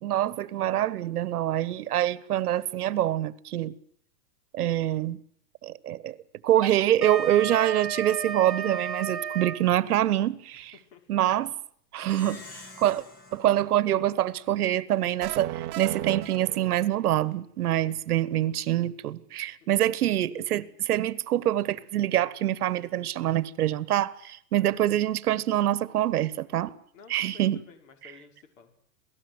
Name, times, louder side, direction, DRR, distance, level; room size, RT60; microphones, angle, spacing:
voice 1, 0.0-3.7 4.5-5.2 5.6-6.2 6.4-10.7 11.1-11.5 11.9-12.4 12.8-13.0 13.3-26.7 27.1-27.6, right 12 dB, 70° right, 1.5 m, -25 dB
Wind instrument woodwind instrument, 6.6-9.6, right 6 dB, ahead, 1.0 m, -33 dB
voice 2, 10.7-11.2 24.6-24.8 26.9-28.7, left 6 dB, 55° left, 5.7 m, -52 dB
Plucked string instrument, 12.0-14.8, left 3 dB, 20° left, 2.7 m, -48 dB
sound 1, 15.2-17.2, right 16 dB, 30° right, 1.1 m, -35 dB
28.0 x 18.5 x 8.1 m
supercardioid pair, 165°, 47 cm